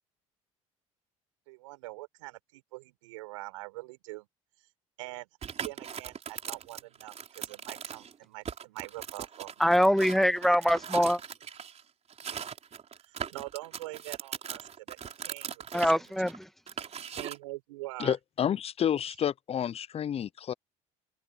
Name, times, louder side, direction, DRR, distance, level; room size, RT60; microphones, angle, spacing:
voice 1, 1.5-4.3 5.0-9.5 10.4-10.5 10.9-11.0 13.0-15.0 15.2-15.6 15.9-16.1 17.2-18.2, right 22 dB, 80° right, 4.9 m, -44 dB
sound 1, 5.4-8.1 8.4-11.8 12.1-17.4, right 7 dB, 40° right, 4.4 m, -40 dB
voice 2, 9.6-11.2 15.7-16.5, equal, ahead, 1.8 m, -24 dB
voice 3, 18.0-20.5, left 9 dB, 35° left, 0.7 m, -30 dB
open air
hypercardioid pair, 60°, 16 cm